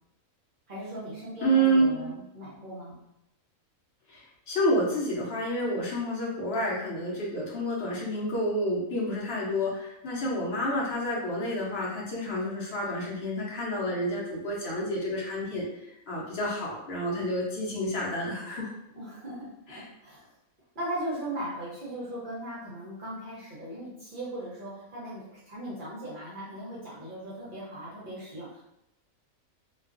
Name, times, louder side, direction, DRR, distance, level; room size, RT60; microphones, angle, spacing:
voice 1, 0.7-3.0 18.9-20.3 20.7-28.6, right 1 dB, 50° right, -6 dB, 0.6 m, -38 dB
voice 2, 1.4-2.1 4.1-18.7 19.7-19.8, right 1 dB, 55° left, -4 dB, 0.8 m, -29 dB
2.4 x 2.3 x 2.3 m, 0.85 s
omnidirectional pair, 1.5 m